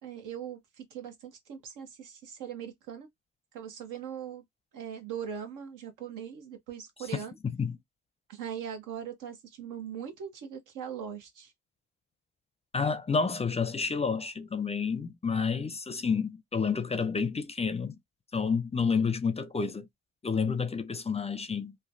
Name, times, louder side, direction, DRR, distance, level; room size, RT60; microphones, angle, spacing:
voice 1, 0.0-3.1 3.5-4.4 4.7-7.4 8.3-11.5, right 8 dB, 90° right, 1.0 m, -40 dB
voice 2, 7.4-7.8 12.7-18.0 18.3-19.9 20.2-21.8, left 5 dB, 20° left, 0.4 m, -29 dB
3.1 x 2.2 x 2.5 m
cardioid pair, 90°, 30 cm